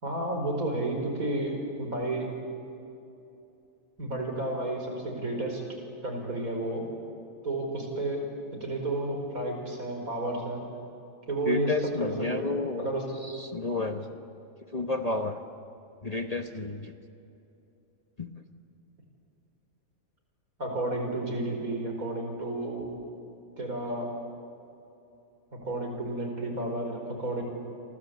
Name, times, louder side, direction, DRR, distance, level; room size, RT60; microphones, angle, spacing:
voice 1, 0.0-2.3 4.0-5.8 6.0-6.9 7.4-8.3 8.5-10.6 11.3-12.4 12.8-13.0 20.6-22.9 23.6-24.1 25.5-27.4, right 1 dB, 75° right, 2 dB, 5.4 m, -31 dB
voice 2, 11.5-12.9 13.2-14.2 14.7-15.4 16.0-16.9 18.2-18.3, left 2 dB, 30° left, 6 dB, 1.1 m, -31 dB
29.5 x 24.0 x 8.3 m, 2.8 s
omnidirectional pair, 1.5 m